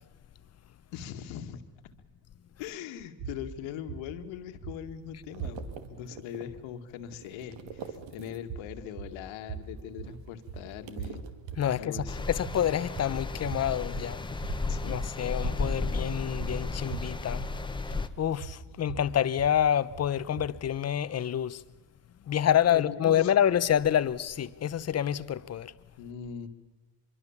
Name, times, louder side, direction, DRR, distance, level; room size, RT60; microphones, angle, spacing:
voice 1, 0.9-1.6 2.6-11.3 11.8-12.3 14.7-15.1 22.7-23.3 26.0-26.5, left 9 dB, 80° left, 2.0 m, -41 dB
sound 1, 3.2-6.0 8.4-20.8, right 6 dB, 55° right, 3.4 m, -42 dB
sound 2, 4.8-8.7 9.0-12.1, right 6 dB, 75° right, 2.2 m, -47 dB
voice 2, 11.6-14.2 14.9-17.4 18.2-21.6 22.3-25.7, left 10 dB, 35° left, 0.8 m, -27 dB
sound 3, 12.1-18.1, left 3 dB, 10° left, 1.1 m, -33 dB
25.0 x 23.5 x 7.3 m
cardioid pair, 115°, 46 cm